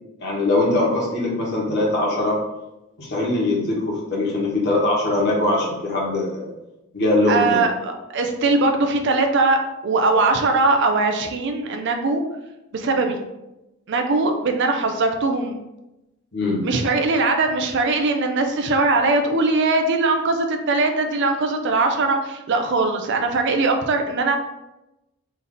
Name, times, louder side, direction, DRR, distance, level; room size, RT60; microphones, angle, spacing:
voice 1, 0.2-2.4 3.0-6.5 6.9-7.6 16.3-16.7, left 2 dB, 50° left, -4 dB, 1.2 m, -21 dB
voice 2, 7.3-12.2 12.7-13.2 13.9-15.6 16.6-24.4, right 3 dB, 50° right, 5 dB, 0.4 m, -21 dB
3.4 x 2.7 x 3.8 m, 0.94 s
head